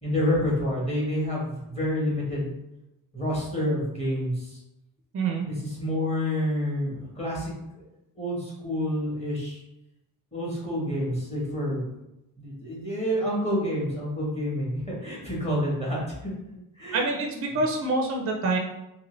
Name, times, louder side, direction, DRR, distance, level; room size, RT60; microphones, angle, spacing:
voice 1, 0.0-2.5 3.1-4.6 5.4-7.8 8.2-9.6 10.3-11.8 12.4-16.3 16.7-17.2, equal, 15° left, -5 dB, 1.0 m, -28 dB
voice 2, 16.9-18.6, right 3 dB, 40° right, 2 dB, 0.4 m, -26 dB
2.8 x 2.7 x 3.0 m, 0.90 s
wide cardioid pair, 135°, 38 cm